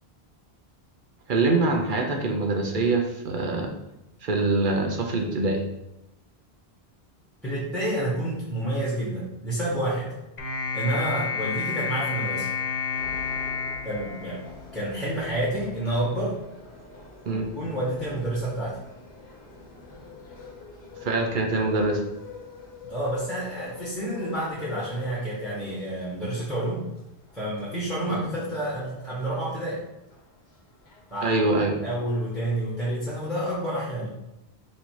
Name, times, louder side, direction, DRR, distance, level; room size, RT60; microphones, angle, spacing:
voice 1, 1.3-3.7 4.2-5.6 17.3-17.5 21.0-22.0 28.1-28.3 31.2-31.8, right 3 dB, 60° right, 2 dB, 0.7 m, -24 dB
voice 2, 7.4-10.1 10.7-12.5 13.8-14.5 14.7-16.4 17.3-18.8 22.9-26.9 27.3-29.8 31.1-31.4 31.8-34.1, right 1 dB, ahead, -7 dB, 1.0 m, -29 dB
sound 1, 10.4-14.9, left 5 dB, 45° left, 0.8 m, -30 dB
sound 2, 12.9-32.4, left 4 dB, 85° left, 1.2 m, -46 dB
4.2 x 2.7 x 4.5 m, 0.90 s
omnidirectional pair, 1.0 m